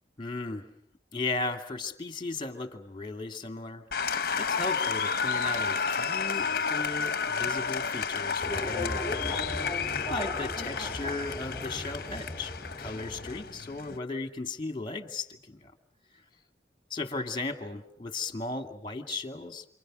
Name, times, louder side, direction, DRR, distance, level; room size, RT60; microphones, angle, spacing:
voice 1, 0.2-0.6 1.1-3.8 4.3-9.3 10.1-12.5 12.8-15.7 16.9-19.7, left 3 dB, 25° left, 7 dB, 2.4 m, -36 dB
Applause, 3.9-14.0, left 5 dB, 55° left, 1.0 m, -31 dB
sound 1, 8.4-13.4, left 1 dB, ahead, 3.4 m, -37 dB
29.0 x 27.5 x 6.3 m, 0.67 s
head